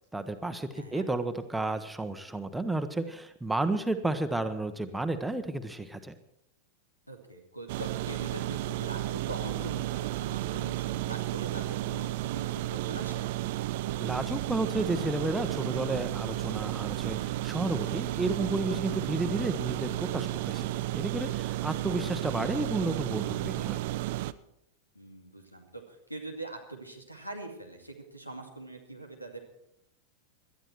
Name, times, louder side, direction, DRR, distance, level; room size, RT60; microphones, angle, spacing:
voice 1, 0.1-6.1 14.0-23.8, right 2 dB, 5° right, 8 dB, 1.0 m, -32 dB
voice 2, 0.7-1.1 7.1-13.3 21.8-22.0 24.9-29.4, right 2 dB, 90° left, 5 dB, 2.4 m, -43 dB
sound 1, 7.7-24.3, right 15 dB, 50° right, 0.5 m, -33 dB
18.0 x 12.5 x 4.5 m, 0.80 s
figure-of-eight pair, 90°, 0 cm